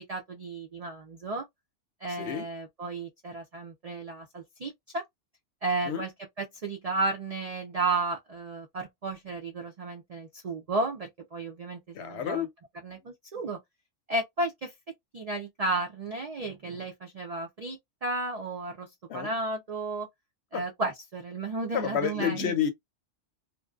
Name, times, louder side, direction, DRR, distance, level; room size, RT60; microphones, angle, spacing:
voice 1, 0.0-1.5 2.0-5.0 5.6-6.1 6.4-12.5 12.8-13.6 14.1-14.7 15.1-20.1 20.5-22.5, right 2 dB, 80° right, 0.3 m, -33 dB
voice 2, 2.1-2.5 5.8-6.0 11.9-12.5 19.1-19.3 20.5-20.6 21.7-22.7, left 9 dB, 65° left, 0.8 m, -30 dB
2.5 x 2.1 x 2.3 m
omnidirectional pair, 1.3 m